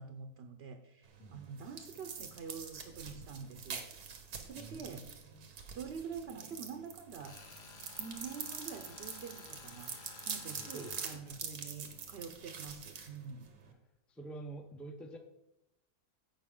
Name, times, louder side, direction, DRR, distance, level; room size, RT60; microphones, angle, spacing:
voice 1, 0.0-5.1 5.7-7.4 8.0-10.0 10.3-13.5, right 6 dB, 55° right, 6 dB, 0.8 m, -46 dB
sound 1, 1.0-13.7, right 6 dB, 90° right, 1.7 m, -45 dB
voice 2, 4.6-5.0 5.3-5.5 10.6-11.5 13.7-13.8 14.1-15.2, right 2 dB, ahead, 4 dB, 0.6 m, -48 dB
Tools, 7.1-11.2, left 4 dB, 45° left, 1.2 m, -53 dB
16.0 x 5.5 x 3.8 m, 0.85 s
omnidirectional pair, 1.6 m